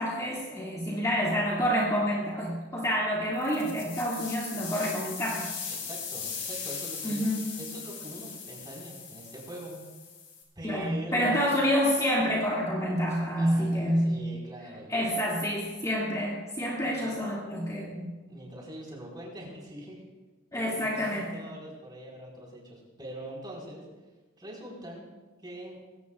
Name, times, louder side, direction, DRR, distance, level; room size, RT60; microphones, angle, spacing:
voice 1, 0.0-5.5 7.0-7.4 10.6-14.1 14.9-18.1 20.5-21.3, equal, 15° left, -5 dB, 2.4 m, -28 dB
sound 1, 3.3-10.4, left 6 dB, 65° left, 4.7 m, -39 dB
voice 2, 5.7-9.8 10.5-11.4 13.3-15.1 16.9-17.2 18.3-20.0 20.5-23.8 24.4-25.1 25.4-25.8, right 1 dB, 20° right, -3 dB, 4.8 m, -43 dB
21.0 x 18.0 x 2.5 m, 1.2 s
head